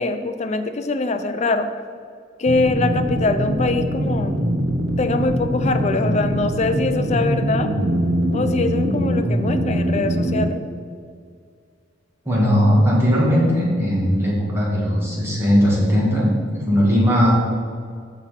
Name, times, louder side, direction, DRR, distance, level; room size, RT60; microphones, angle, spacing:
voice 1, 0.0-1.7 2.4-4.3 5.0-7.7 8.3-10.6, left 3 dB, 35° left, 8 dB, 0.5 m, -23 dB
sound 1, 2.5-10.5, equal, 70° right, 0.9 m, -22 dB
voice 2, 12.3-17.3, equal, 15° right, -6 dB, 2.0 m, -18 dB
6.0 x 5.6 x 5.8 m, 2.1 s
head